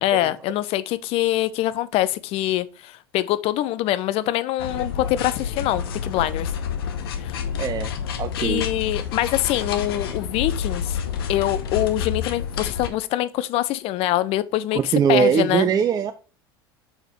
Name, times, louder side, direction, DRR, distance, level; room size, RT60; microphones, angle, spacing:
voice 1, 0.0-6.5 7.2-7.3 8.4-11.0 11.3-15.7, left 14 dB, 50° left, 0.6 m, -24 dB
sound 1, 4.6-12.9, left 7 dB, 75° left, 0.9 m, -29 dB
voice 2, 7.6-7.9 8.2-8.6 14.9-16.1, right 7 dB, 30° right, 0.5 m, -21 dB
6.4 x 4.9 x 3.1 m
hypercardioid pair, 80°, 13 cm